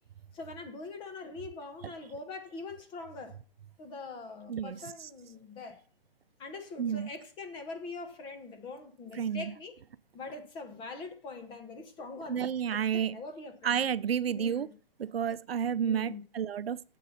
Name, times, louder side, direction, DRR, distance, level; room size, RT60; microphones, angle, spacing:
voice 1, 0.3-3.4 3.8-5.8 6.4-9.8 10.1-13.8 14.3-14.7 15.8-16.2, left 3 dB, 15° left, 1.2 m, -43 dB
voice 2, 4.5-5.1 6.8-7.1 9.1-9.5 12.3-13.2 13.6-14.7 15.0-17.0, right 8 dB, 80° right, 0.7 m, -31 dB
9.4 x 7.6 x 5.5 m
hypercardioid pair, 150°, 29 cm